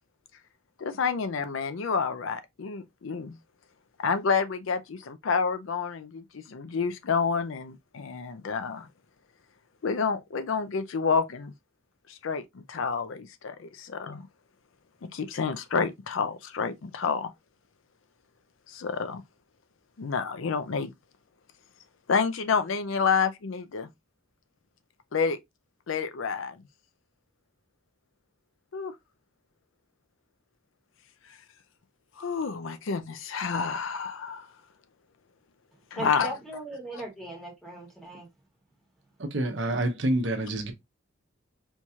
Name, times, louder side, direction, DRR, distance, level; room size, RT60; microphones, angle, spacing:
voice 1, 0.8-3.4 4.0-8.9 9.8-11.5 12.1-12.4 12.7-14.3 15.1-17.3 18.7-19.2 20.0-20.9 22.1-23.9 25.1-25.4 25.9-26.6 28.7-28.9 32.2-34.5 35.9-36.3, left 5 dB, 75° left, 0.5 m, -29 dB
voice 2, 35.9-38.3, right 1 dB, ahead, 1.3 m, -38 dB
voice 3, 39.2-40.7, right 1 dB, 65° right, 0.8 m, -27 dB
4.5 x 2.8 x 2.3 m
head